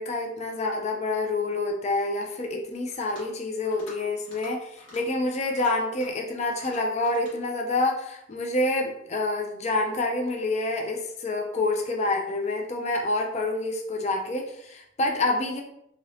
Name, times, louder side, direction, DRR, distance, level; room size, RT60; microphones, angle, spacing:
voice 1, 0.0-15.6, left 2 dB, 35° left, 2 dB, 0.4 m, -27 dB
sound 1, 2.9-3.3 3.7-4.0 4.3-4.5 4.8-5.0 5.4-6.2 6.6-7.4, left 1 dB, 75° left, 1.5 m, -48 dB
2.8 x 2.6 x 3.2 m, 0.74 s
head